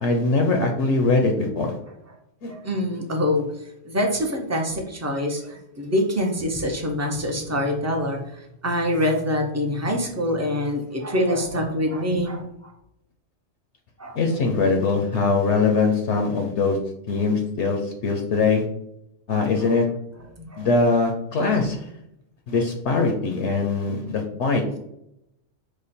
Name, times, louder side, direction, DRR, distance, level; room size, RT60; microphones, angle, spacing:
voice 1, 0.0-1.7 2.4-2.5 14.1-16.8 17.1-18.6 19.3-19.9 20.6-21.8 22.5-24.6, left 3 dB, 70° left, 3 dB, 0.9 m, -22 dB
voice 2, 2.5-3.5 3.8-12.7 14.0-14.2 19.6-19.7 20.4-20.7 21.5-21.6, left 1 dB, 20° right, 1 dB, 0.4 m, -25 dB
5.0 x 2.2 x 4.1 m, 0.79 s
omnidirectional pair, 1.3 m